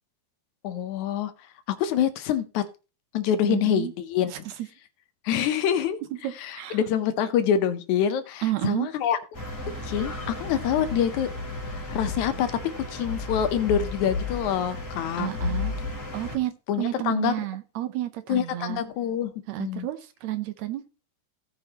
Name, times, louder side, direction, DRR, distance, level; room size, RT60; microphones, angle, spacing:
voice 1, 0.6-1.3 1.7-2.6 3.1-4.3 5.2-6.0 6.4-9.2 9.7-11.3 11.6-12.5 12.8-15.3 16.7-17.3 18.3-19.3 19.6-19.9, left 9 dB, 75° left, 2.2 m, -26 dB
voice 2, 3.4-3.9 4.3-4.5 6.2-6.8 8.4-8.9 15.2-15.8 16.1-18.8 19.5-20.8, right 15 dB, 75° right, 1.8 m, -30 dB
sound 1, 9.3-16.4, left 3 dB, 25° left, 2.5 m, -33 dB
17.0 x 5.8 x 2.9 m
omnidirectional pair, 3.5 m